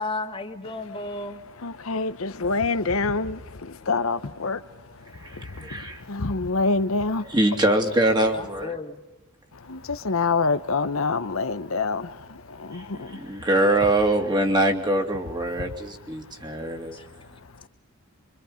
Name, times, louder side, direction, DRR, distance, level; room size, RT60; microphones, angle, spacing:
voice 1, 0.0-1.4 8.3-9.0 16.9-17.0, left 3 dB, 25° left, 1.9 m, -33 dB
voice 2, 1.3-7.4 9.5-13.5 15.7-15.8 16.2-17.7, left 3 dB, 80° left, 0.9 m, -28 dB
voice 3, 5.2-6.0 7.3-8.7 12.7-17.0, right 1 dB, 20° right, 2.6 m, -23 dB
27.5 x 24.5 x 5.1 m
head